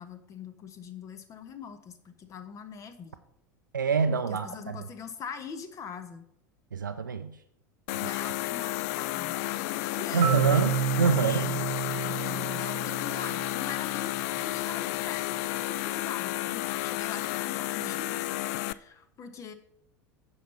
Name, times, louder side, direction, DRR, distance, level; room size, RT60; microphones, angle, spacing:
voice 1, 0.0-3.2 4.3-6.3 8.0-9.4 9.9-10.7 11.1-19.5, left 6 dB, 30° left, 10 dB, 1.1 m, -42 dB
voice 2, 3.7-4.8 6.7-7.4 8.0-8.1 10.1-11.5, right 5 dB, 80° right, 7 dB, 0.5 m, -26 dB
sound 1, 7.9-18.7, left 17 dB, 50° left, 0.3 m, -32 dB
Marimba xylophone, 10.2-14.1, right 10 dB, 45° right, 0.7 m, -30 dB
9.1 x 5.8 x 5.6 m, 0.73 s
figure-of-eight pair, 80°, 10 cm